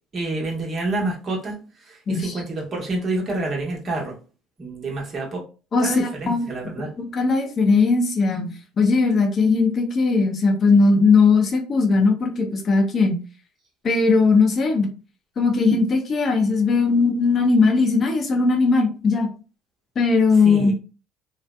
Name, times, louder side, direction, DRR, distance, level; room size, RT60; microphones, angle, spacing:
voice 1, 0.1-4.2 4.6-5.4 5.8-6.9 20.4-20.7, right 2 dB, 40° right, 1.1 m, -28 dB
voice 2, 5.7-6.5 6.8-13.2 13.8-14.9 15.4-19.3 20.0-20.7, left 4 dB, 40° left, 0.6 m, -19 dB
2.7 x 2.1 x 2.3 m
hypercardioid pair, 70°, 0 cm